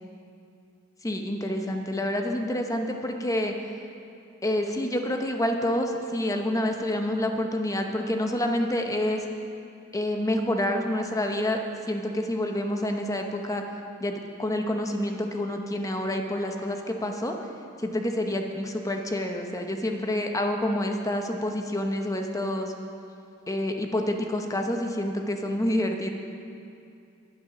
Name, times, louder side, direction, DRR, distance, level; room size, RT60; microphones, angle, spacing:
voice 1, 1.0-3.5 4.4-9.3 9.9-11.6 11.9-13.6 14.0-17.4 17.8-22.7 23.5-26.1, left 1 dB, 15° left, 4 dB, 0.8 m, -28 dB
10.5 x 8.8 x 6.1 m, 2.6 s
head